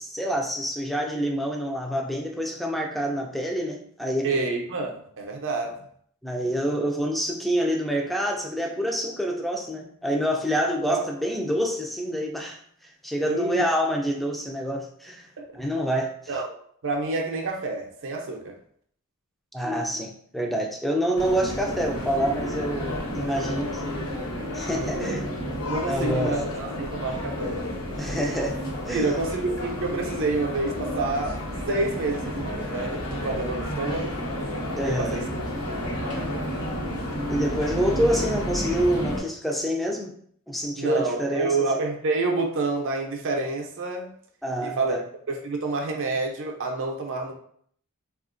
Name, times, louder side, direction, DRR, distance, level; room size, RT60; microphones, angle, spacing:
voice 1, 0.0-4.3 6.2-15.3 15.5-16.1 19.5-24.1 24.5-25.2 25.9-26.4 28.0-28.6 28.9-29.1 34.8-35.2 37.3-40.1 40.5-41.6 44.4-45.0, equal, ahead, 1 dB, 0.4 m, -27 dB
voice 2, 4.2-5.8 10.9-11.0 13.3-13.6 15.4-15.5 16.3-16.5 16.8-18.5 23.3-23.7 24.7-25.2 25.6-27.6 28.9-31.4 31.7-34.2 34.8-35.3 35.7-36.5 40.8-44.1 44.6-45.0 45.3-47.3, right 3 dB, 60° right, 2 dB, 0.5 m, -28 dB
sound 1, 21.1-39.2, equal, 85° left, 1.0 m, -31 dB
3.5 x 2.4 x 2.5 m, 0.62 s
head